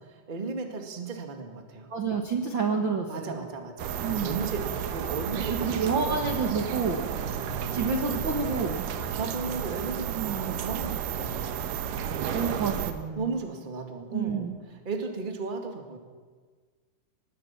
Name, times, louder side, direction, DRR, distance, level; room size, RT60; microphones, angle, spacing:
voice 1, 0.0-1.9 2.7-6.3 7.6-7.8 9.2-11.4 13.1-14.5 14.8-16.0, right 4 dB, 20° right, 4 dB, 1.7 m, -35 dB
voice 2, 1.9-3.5 4.0-4.4 5.5-7.1 7.7-8.9 10.1-10.6 12.3-13.2 14.1-14.6, right 4 dB, 45° right, 3 dB, 1.7 m, -29 dB
sound 1, 3.8-12.9, right 8 dB, 70° right, 2.8 m, -32 dB
25.0 x 20.0 x 6.0 m, 1.5 s
omnidirectional pair, 4.1 m